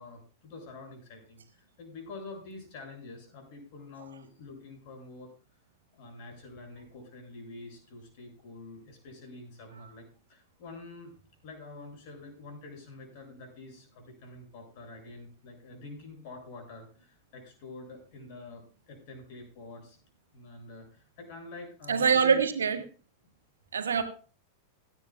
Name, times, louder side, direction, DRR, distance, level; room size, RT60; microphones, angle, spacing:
voice 1, 0.0-5.3 5.9-11.1 11.4-20.0 20.3-22.4, left 3 dB, 50° left, 6.7 m, -47 dB
voice 2, 21.9-22.8 23.7-24.0, right 6 dB, 70° right, 1.5 m, -24 dB
17.5 x 13.5 x 2.3 m
figure-of-eight pair, 90°, 0 cm